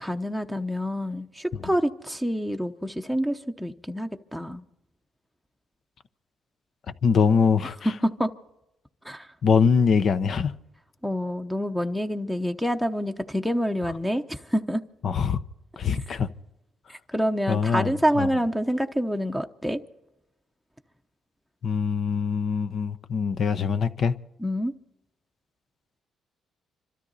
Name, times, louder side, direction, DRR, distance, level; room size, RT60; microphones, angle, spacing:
voice 1, 0.0-4.6 8.0-8.3 9.0-9.3 11.0-14.8 16.9-19.8 24.4-24.7, equal, ahead, 0.8 m, -27 dB
voice 2, 7.0-7.9 9.4-10.5 15.0-15.4 15.8-16.3 17.5-17.9 18.2-18.3 21.6-24.1, left 6 dB, 55° left, 0.8 m, -23 dB
26.0 x 13.0 x 4.1 m
cardioid pair, 90°, 0 cm